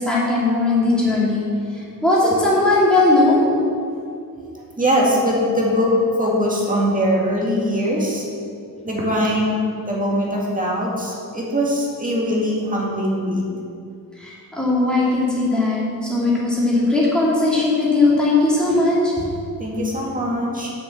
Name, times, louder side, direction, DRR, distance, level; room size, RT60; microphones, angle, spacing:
voice 1, 0.0-1.4 2.0-3.4 14.2-19.1, left 2 dB, ahead, -8 dB, 2.7 m, -18 dB
voice 2, 4.5-8.2 8.8-9.6 9.9-13.5 19.6-20.7, equal, 20° right, -4 dB, 2.0 m, -21 dB
7.5 x 6.7 x 7.6 m, 2.5 s
wide cardioid pair, 155°, 36 cm